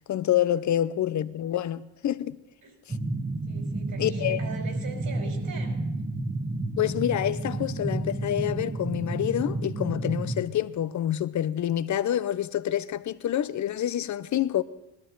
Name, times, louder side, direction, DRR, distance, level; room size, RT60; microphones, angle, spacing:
voice 1, 0.1-2.4 2.9-3.0 4.0-4.4 6.8-14.6, left 11 dB, 45° left, 0.8 m, -27 dB
sound 1, 2.9-10.4, right 2 dB, 15° right, 1.4 m, -31 dB
voice 2, 3.4-5.8, right 4 dB, 55° right, 4.9 m, -41 dB
19.5 x 12.5 x 3.9 m
supercardioid pair, 70°, 42 cm